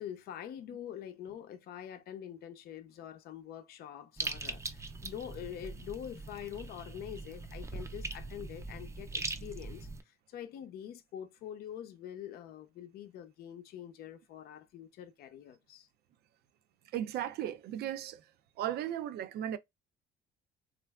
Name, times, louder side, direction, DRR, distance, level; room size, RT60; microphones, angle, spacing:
voice 1, 0.0-15.9, left 10 dB, 65° left, 0.6 m, -45 dB
sound 1, 4.2-10.0, right 3 dB, 15° right, 0.5 m, -41 dB
voice 2, 16.9-18.2 18.6-19.6, right 11 dB, 70° right, 0.5 m, -36 dB
3.3 x 2.5 x 2.2 m
cardioid pair, 110°, 17 cm